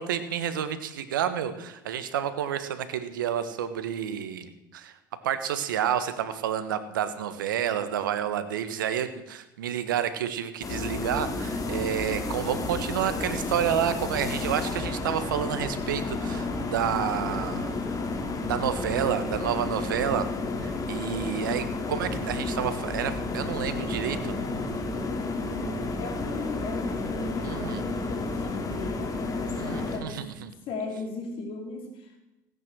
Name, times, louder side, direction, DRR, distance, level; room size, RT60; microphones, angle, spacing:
voice 1, 0.0-5.0 5.2-17.8 18.5-20.3 20.6-24.3 27.4-27.8 29.6-30.5, right 9 dB, 85° right, 11 dB, 1.4 m, -30 dB
sound 1, 10.6-30.0, left 3 dB, 35° left, 3.0 m, -31 dB
voice 2, 25.5-30.3 30.7-32.2, left 3 dB, 60° left, 3 dB, 4.4 m, -38 dB
17.0 x 9.6 x 6.3 m, 0.96 s
hypercardioid pair, 80°, 10 cm